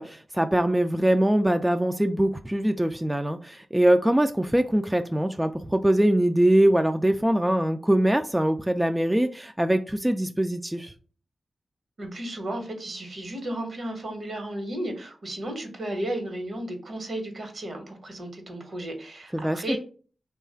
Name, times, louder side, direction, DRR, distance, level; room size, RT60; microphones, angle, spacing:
voice 1, 0.0-10.9 19.3-19.8, right 1 dB, 10° right, 7 dB, 0.3 m, -23 dB
voice 2, 12.0-19.8, right 1 dB, 60° right, 4 dB, 1.2 m, -34 dB
3.2 x 2.3 x 4.3 m, 0.39 s
cardioid pair, 55°, 0 cm